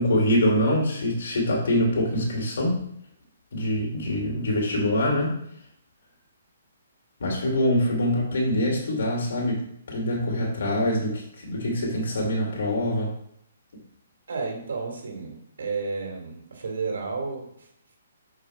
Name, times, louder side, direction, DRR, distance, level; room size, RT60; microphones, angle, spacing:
voice 1, 0.0-2.8 3.5-5.3 7.2-13.1, left 1 dB, 70° left, -2 dB, 2.6 m, -24 dB
voice 2, 14.3-17.7, right 4 dB, 75° right, 2 dB, 2.6 m, -32 dB
6.6 x 5.3 x 4.8 m, 0.72 s
hypercardioid pair, 150°, 0 cm